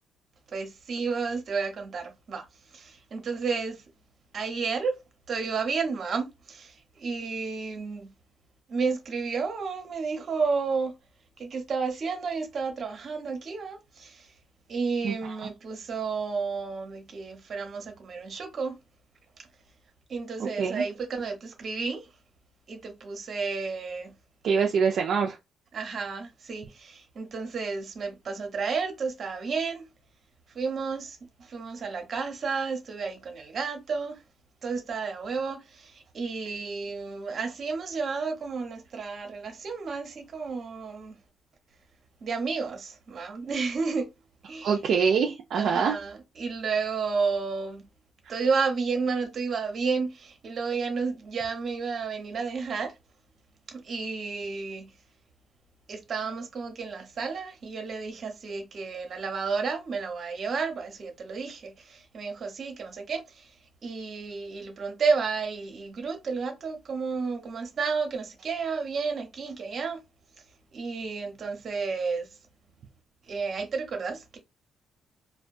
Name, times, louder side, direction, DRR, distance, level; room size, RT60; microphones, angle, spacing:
voice 1, 0.5-2.4 2.7-3.8 4.3-5.0 5.3-8.1 8.7-10.9 11.4-14.3 14.7-18.8 20.1-22.1 22.7-24.1 25.7-29.8 30.5-34.2 34.6-41.2 42.2-44.1 44.4-44.8 45.5-47.8 48.3-52.9 53.7-54.9 55.9-63.5 63.8-70.0 70.7-72.3 73.3-74.4, right 5 dB, 50° right, 0.8 m, -31 dB
voice 2, 24.4-25.4 44.6-46.0, right 6 dB, 65° right, 0.4 m, -24 dB
2.2 x 2.2 x 2.6 m
cardioid pair, 90°, 0 cm